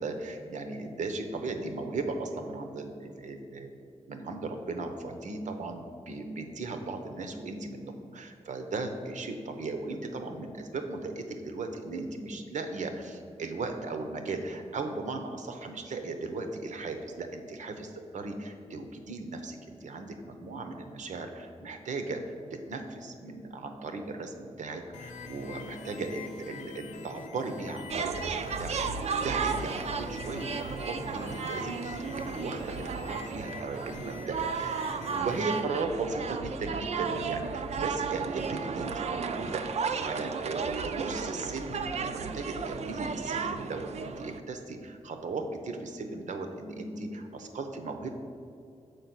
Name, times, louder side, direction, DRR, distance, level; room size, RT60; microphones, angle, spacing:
voice 1, 0.0-3.7 4.1-34.9 35.1-48.2, right 3 dB, 80° right, 6 dB, 0.8 m, -37 dB
sound 1, 24.9-35.6, left 5 dB, 80° left, 0.6 m, -45 dB
sound 2, 27.9-44.4, right 5 dB, 60° right, 0.4 m, -34 dB
6.8 x 4.6 x 6.0 m, 2.5 s
wide cardioid pair, 110°, 12 cm